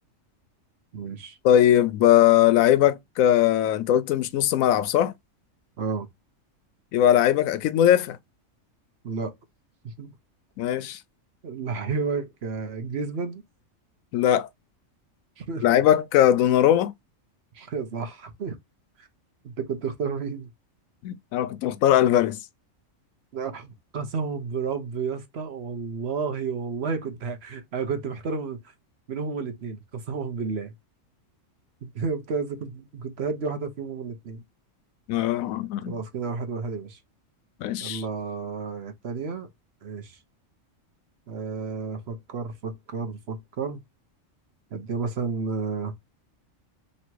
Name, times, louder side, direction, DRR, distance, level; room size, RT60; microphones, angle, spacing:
voice 1, 0.9-1.4 5.8-6.1 9.0-9.3 9.8-10.1 11.4-13.4 15.4-15.8 17.5-18.6 19.0-19.1 19.4-20.5 23.3-28.7 29.1-30.7 31.8-34.4 35.9-37.0 37.8-39.5 39.8-40.2 41.3-43.8 44.7-45.9, right 5 dB, 55° right, 1.0 m, -31 dB
voice 2, 1.4-5.1 6.9-8.2 10.6-11.0 14.1-14.5 15.6-16.9 21.0-22.4 35.1-36.0 37.6-38.0, left 11 dB, 85° left, 1.0 m, -20 dB
3.1 x 2.9 x 4.4 m
omnidirectional pair, 1.4 m